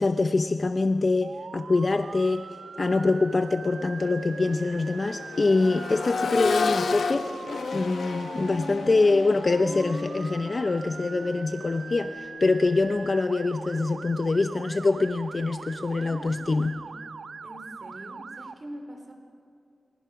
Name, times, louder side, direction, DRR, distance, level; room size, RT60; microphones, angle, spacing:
voice 1, 0.0-2.5 2.8-7.3 7.7-16.8, left 3 dB, 40° left, 7 dB, 0.7 m, -24 dB
Motor vehicle (road) / Siren, 1.2-18.5, right 5 dB, 65° right, 0.6 m, -42 dB
Accelerating revving vroom, 2.8-2.9 3.4-13.3 15.0-15.1, left 4 dB, 90° left, 1.0 m, -33 dB
voice 2, 15.9-16.9 17.4-19.1, equal, 35° right, 3 dB, 3.1 m, -44 dB
29.0 x 23.5 x 5.9 m, 2.4 s
wide cardioid pair, 105°, 0 cm